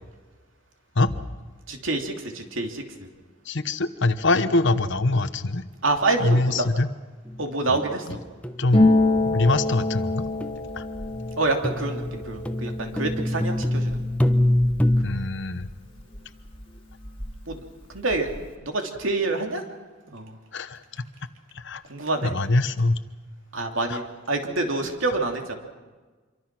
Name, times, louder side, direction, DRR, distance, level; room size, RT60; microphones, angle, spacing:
voice 1, 1.7-3.1 5.8-6.7 7.4-8.2 11.4-14.0 17.5-17.6 17.9-18.3 18.6-19.6 20.1-20.4 21.9-22.3 23.5-25.5, right 2 dB, 65° right, 3 dB, 3.0 m, -27 dB
voice 2, 3.5-5.6 6.2-6.9 8.6-8.9 9.2-10.3 10.7-10.8 15.0-15.7 20.5-20.8 21.5-21.8 22.2-23.0 23.9-24.0 25.1-25.2, left 2 dB, 60° left, 11 dB, 1.1 m, -23 dB
sound 1, 7.3-7.8 8.1-8.2 8.4-8.8 9.5-9.8 10.4-10.5 11.1-15.0, left 1 dB, 5° left, 0.9 m, -25 dB
Harp, 8.7-16.2 16.4-17.6 17.8-18.5, left 2 dB, 25° left, 2.5 m, -27 dB
26.5 x 23.5 x 6.1 m, 1.3 s
head